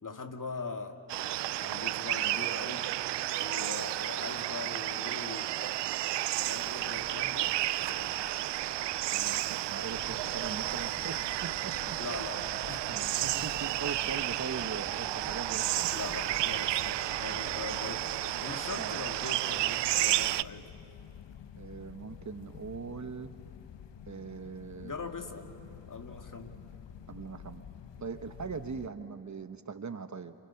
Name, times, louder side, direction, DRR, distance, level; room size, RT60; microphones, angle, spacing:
voice 1, 0.0-1.0 1.6-3.0 3.4-6.1 6.4-8.5 12.0-12.8 13.2-13.4 15.9-18.1 18.4-20.7 24.8-25.6 25.9-26.6, left 4 dB, 45° left, 5 dB, 2.2 m, -42 dB
sound 1, 1.1-20.4, right 15 dB, 70° right, 0.5 m, -32 dB
sound 2, 6.3-14.3, left 2 dB, 25° left, 4.1 m, -59 dB
voice 2, 9.1-12.0 12.9-15.9 17.3-17.5 18.7-19.1 20.2-20.4 21.6-23.3 24.1-25.1 27.1-27.6 28.0-30.3, right 5 dB, 40° right, 9 dB, 1.2 m, -41 dB
sound 3, 9.9-28.9, left 8 dB, 75° left, 1.1 m, -49 dB
29.0 x 27.5 x 5.9 m, 2.8 s
cardioid pair, 50°, 44 cm